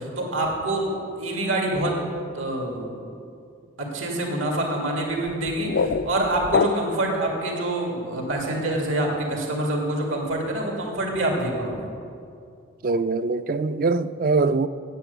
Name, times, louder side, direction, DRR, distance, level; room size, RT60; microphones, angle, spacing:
voice 1, 0.0-2.0 2.3-3.0 3.8-11.9, right 1 dB, 85° right, 2.1 m, -26 dB
sound 1, 5.2-7.2, left 5 dB, 60° left, 0.3 m, -26 dB
voice 2, 12.8-14.7, right 3 dB, 45° right, 0.3 m, -23 dB
9.2 x 8.5 x 8.0 m
head